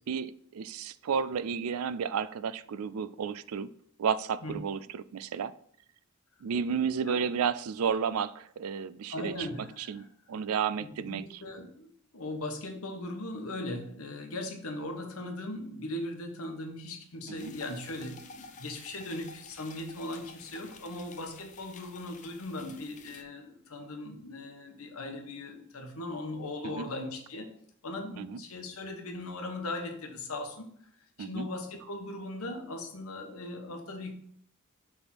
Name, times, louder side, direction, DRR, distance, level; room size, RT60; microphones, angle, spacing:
voice 1, 0.1-3.7 4.0-5.5 6.4-9.5 9.8-11.2 17.3-17.5 26.6-26.9 28.2-28.4 31.2-31.5, right 7 dB, 80° right, 17 dB, 0.4 m, -32 dB
voice 2, 9.1-10.1 10.8-27.5 27.8-30.7 31.2-34.1, left 2 dB, 80° left, 4 dB, 1.2 m, -39 dB
sound 1, 17.4-23.2, left 4 dB, 35° left, 0.6 m, -51 dB
6.8 x 3.6 x 5.8 m, 0.64 s
head